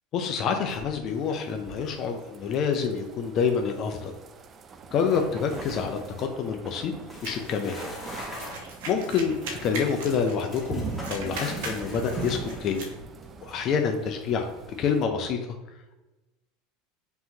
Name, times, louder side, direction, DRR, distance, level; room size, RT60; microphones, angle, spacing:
voice 1, 0.1-4.1 4.9-6.9 7.2-7.8 8.9-12.8 13.4-14.5 14.8-15.4, left 6 dB, 50° left, 4 dB, 0.5 m, -27 dB
sound 1, 0.7-1.2 1.5-1.9 5.0-6.3 7.0-8.7 9.4-13.3, left 1 dB, 10° left, 1.4 m, -42 dB
sound 2, 1.1-15.1, right 4 dB, 35° right, 0.4 m, -42 dB
sound 3, 7.2-10.7 10.9-12.9, right 2 dB, 75° right, 0.9 m, -39 dB
5.4 x 2.9 x 2.8 m, 1.1 s
hypercardioid pair, 95°, 0 cm